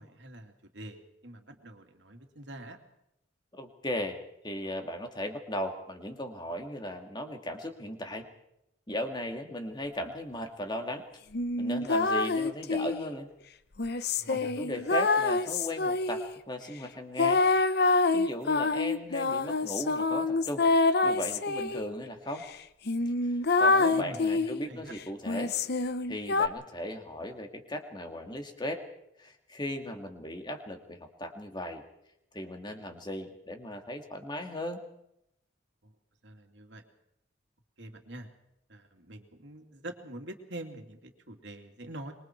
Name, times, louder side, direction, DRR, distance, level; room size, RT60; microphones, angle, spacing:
voice 1, 0.0-2.8 14.2-14.6 23.9-24.9 35.8-35.9 36.2-36.8 37.8-38.3 38.7-42.1, right 1 dB, 60° right, 4 dB, 2.7 m, -45 dB
voice 2, 3.5-8.3 8.9-11.0 11.6-13.3 14.3-17.4 18.1-20.6 21.0-22.4 23.2-23.3 23.6-25.5 26.1-28.8 29.2-31.8 32.3-34.9, left 1 dB, 20° left, 5 dB, 2.2 m, -37 dB
sound 1, 11.3-13.1 13.8-16.3 17.2-21.8 22.4-22.5 22.9-24.6 25.3-26.5, left 3 dB, 55° left, 0.8 m, -26 dB
26.0 x 22.5 x 4.6 m, 0.80 s
head